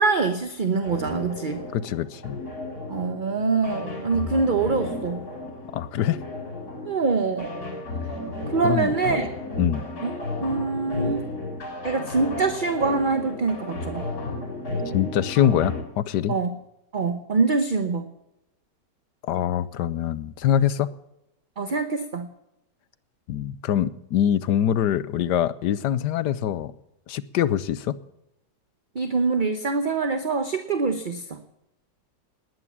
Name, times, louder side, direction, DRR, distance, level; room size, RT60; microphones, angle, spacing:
voice 1, 0.0-1.6 2.9-5.3 6.9-7.5 8.5-9.3 10.0-10.1 10.4-11.2 11.8-14.1 16.3-16.5 16.9-18.0 21.6-22.3 28.9-31.4, right 4 dB, 35° right, 8 dB, 0.9 m, -24 dB
sound 1, 0.8-15.8, left 2 dB, 55° left, 4.4 m, -33 dB
voice 2, 1.7-2.4 5.7-6.2 8.6-9.2 9.6-9.9 14.9-16.4 19.2-20.9 23.3-26.7 27.1-28.0, left 10 dB, 70° left, 15 dB, 1.3 m, -24 dB
19.5 x 9.4 x 7.2 m, 0.86 s
omnidirectional pair, 1.9 m